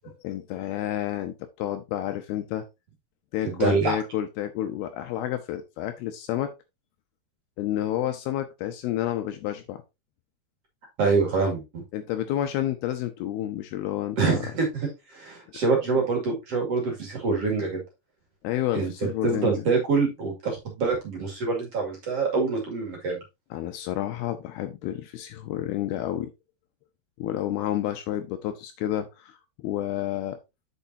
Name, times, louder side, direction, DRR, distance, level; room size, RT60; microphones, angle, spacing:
voice 1, 0.0-2.7 3.3-6.5 7.6-9.8 11.9-14.4 18.4-19.6 23.5-26.3 27.2-30.4, left 12 dB, 80° left, 2.4 m, -30 dB
voice 2, 3.5-4.0 11.0-11.8 14.2-17.8 18.7-23.2, right 4 dB, 40° right, 2.7 m, -25 dB
8.5 x 6.9 x 2.7 m
omnidirectional pair, 4.9 m